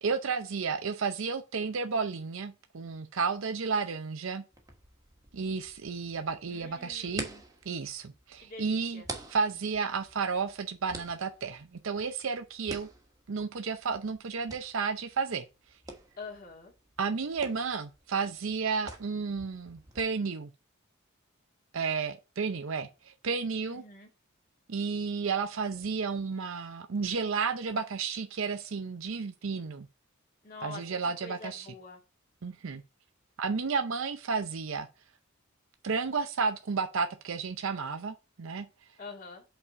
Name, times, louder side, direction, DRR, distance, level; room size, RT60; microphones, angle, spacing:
voice 1, 0.0-4.4 5.3-7.3 7.7-9.0 9.3-12.9 13.3-15.4 17.0-20.5 21.7-23.8 24.7-29.9 30.6-31.7 32.4-32.8 33.4-34.9 35.8-38.7, right 5 dB, 70° right, 0.6 m, -32 dB
sound 1, 4.5-20.0, right 2 dB, 15° right, 1.3 m, -48 dB
voice 2, 6.5-7.4 8.4-9.1 16.2-16.7 23.7-24.1 30.4-32.0 39.0-39.4, left 3 dB, 45° left, 2.1 m, -46 dB
5.6 x 4.1 x 5.8 m
head